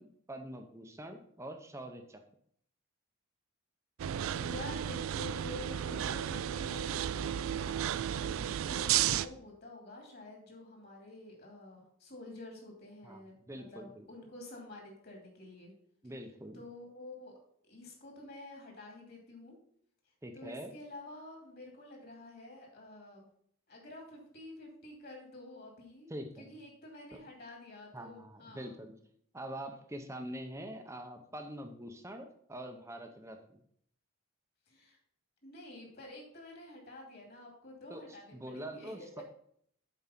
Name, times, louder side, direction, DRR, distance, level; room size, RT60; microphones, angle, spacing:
voice 1, 0.0-2.2 13.0-14.1 16.0-16.6 20.2-20.7 26.1-26.5 27.9-28.9 29.3-33.6 37.9-39.2, right 1 dB, 15° right, 5 dB, 0.6 m, -44 dB
sound 1, 4.0-9.3, right 10 dB, 70° right, 0.3 m, -33 dB
voice 2, 4.3-15.7 16.5-17.3 17.7-19.6 20.3-23.3 23.7-26.1 26.4-28.8 34.7-35.0 35.4-39.2, left 2 dB, 45° left, 0 dB, 2.5 m, -49 dB
7.4 x 4.7 x 5.7 m, 0.65 s
head